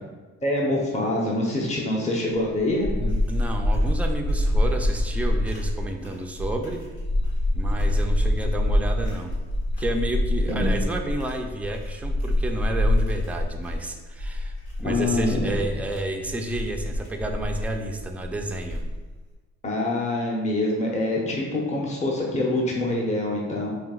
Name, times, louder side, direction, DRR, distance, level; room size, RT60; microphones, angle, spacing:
voice 1, 0.4-2.9 10.5-10.6 14.8-15.5 19.6-23.7, left 1 dB, 25° left, -2 dB, 0.7 m, -25 dB
sound 1, 2.3-19.2, left 1 dB, 90° left, 1.3 m, -26 dB
voice 2, 2.9-6.8 7.5-9.3 9.8-18.8, right 1 dB, 5° right, 3 dB, 0.3 m, -31 dB
5.1 x 2.8 x 2.3 m, 1.3 s
cardioid pair, 90°, 30 cm